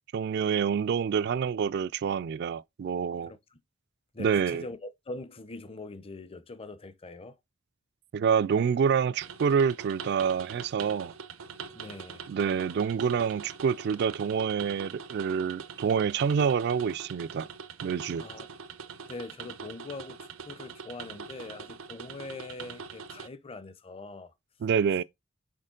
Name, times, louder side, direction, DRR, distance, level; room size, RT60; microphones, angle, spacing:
voice 1, 0.1-3.3 4.2-4.7 8.1-11.1 12.3-17.5 17.8-18.2 24.6-25.0, right 7 dB, 55° right, 0.3 m, -27 dB
voice 2, 3.3-3.6 4.1-7.4 11.7-12.3 18.2-18.5 19.1-24.3, left 3 dB, 30° left, 0.6 m, -43 dB
sound 1, 9.2-23.3, right 6 dB, 85° right, 0.7 m, -43 dB
6.5 x 4.3 x 3.8 m
head